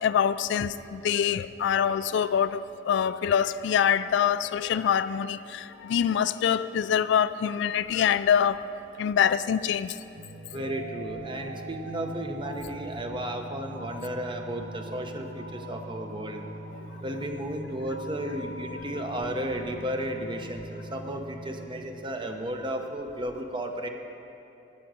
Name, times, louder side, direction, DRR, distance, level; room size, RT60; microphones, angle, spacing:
voice 1, 0.0-8.6 9.0-9.9 15.6-15.7, left 8 dB, 70° left, 15 dB, 0.3 m, -25 dB
sound 1, 10.1-21.7, right 1 dB, 85° right, 1.4 m, -41 dB
voice 2, 10.5-16.4 17.0-23.9, right 1 dB, 25° right, 4 dB, 0.9 m, -34 dB
9.7 x 7.9 x 8.8 m, 3.0 s
head